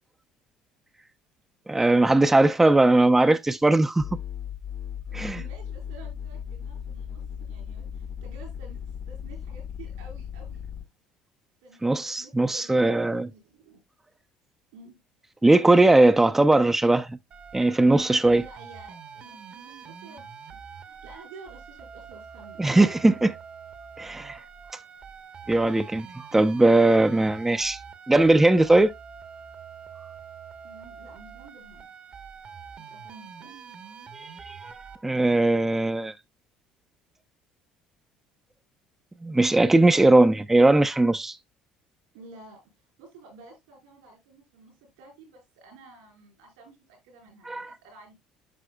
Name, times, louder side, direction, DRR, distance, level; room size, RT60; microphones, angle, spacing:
voice 1, 1.7-4.1 5.1-5.4 11.8-13.3 15.4-17.2 17.5-18.4 22.6-23.3 24.0-24.4 25.5-27.8 28.1-28.9 34.1-34.7 35.0-36.1 39.2-41.4 47.5-47.7, right 2 dB, 10° right, 0.6 m, -19 dB
sound 1, 4.0-10.8, left 8 dB, 45° left, 1.1 m, -37 dB
voice 2, 5.1-8.8 9.1-10.6 11.6-13.8 14.7-15.0 18.3-22.7 23.0-23.1 30.6-31.9 32.8-33.5 39.9-40.3 42.1-42.6 43.0-48.2, right 3 dB, 85° right, 4.3 m, -50 dB
sound 2, 17.3-35.0, right 7 dB, 45° right, 1.1 m, -45 dB
10.0 x 5.8 x 2.2 m
hypercardioid pair, 65°, 3 cm